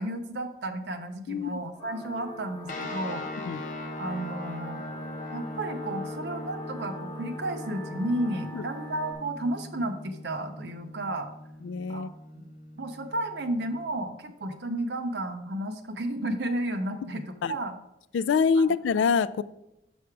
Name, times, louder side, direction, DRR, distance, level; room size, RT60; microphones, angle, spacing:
voice 1, 0.0-3.3 4.0-4.8 5.3-11.3 11.9-12.4 12.8-17.7 18.6-18.7, right 1 dB, 65° right, 5 dB, 0.7 m, -32 dB
voice 2, 1.3-1.6 3.5-3.6 8.5-8.6 11.6-12.1 17.4-17.6 18.1-19.4, left 5 dB, 85° left, 15 dB, 0.3 m, -25 dB
sound 1, 1.8-9.1, left 2 dB, 25° left, 1.1 m, -43 dB
sound 2, 2.7-13.9, left 1 dB, 45° left, 0.8 m, -40 dB
6.2 x 5.8 x 4.7 m, 0.87 s
head